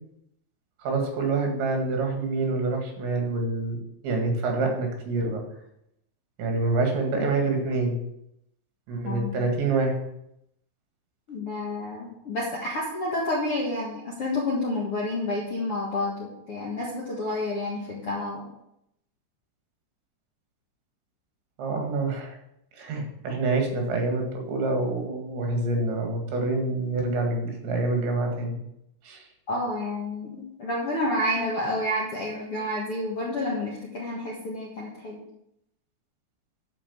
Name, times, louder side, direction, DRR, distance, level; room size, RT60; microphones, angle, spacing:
voice 1, 0.8-3.8 4.0-5.4 6.4-8.0 8.9-10.0 21.6-22.4 22.7-28.6 29.0-29.2, right 3 dB, 75° right, 2 dB, 4.3 m, -26 dB
voice 2, 9.0-9.4 11.3-18.5 29.5-35.2, left 1 dB, 55° left, -4 dB, 1.6 m, -29 dB
12.0 x 4.8 x 7.0 m, 0.79 s
omnidirectional pair, 5.2 m